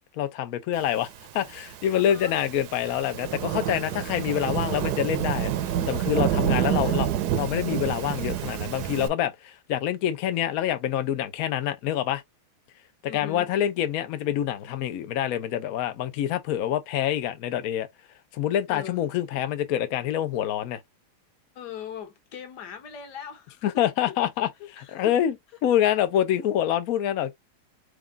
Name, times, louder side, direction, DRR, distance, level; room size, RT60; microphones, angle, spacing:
voice 1, 0.1-1.1 1.3-7.1 7.3-12.2 13.1-17.9 18.3-20.8 23.6-24.5 24.9-25.3 25.6-27.3, left 11 dB, 90° left, 0.7 m, -26 dB
Thunderstorm / Rain, 1.4-9.1, right 11 dB, 70° right, 1.0 m, -28 dB
voice 2, 1.9-2.4 3.9-4.3 6.3-7.1 13.1-13.5 18.7-19.0 19.3-19.4 21.5-23.7 24.1-24.2 24.6-25.1, left 8 dB, 55° left, 1.4 m, -41 dB
4.8 x 2.4 x 3.3 m
omnidirectional pair, 2.4 m